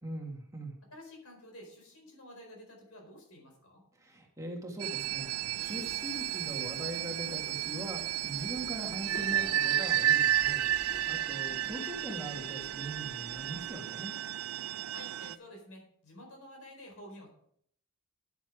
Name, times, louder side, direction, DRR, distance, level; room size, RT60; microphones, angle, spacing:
voice 1, 0.0-0.8 4.0-14.2, right 1 dB, 15° right, 1 dB, 1.9 m, -41 dB
voice 2, 0.9-3.8 14.9-17.3, left 1 dB, 75° left, 1 dB, 4.5 m, -50 dB
sound 1, 4.8-15.3, right 11 dB, 75° right, 0.4 m, -32 dB
Subway metro underground, 5.0-13.7, left 1 dB, 45° left, 2.0 m, -52 dB
9.9 x 9.8 x 4.9 m, 0.66 s
head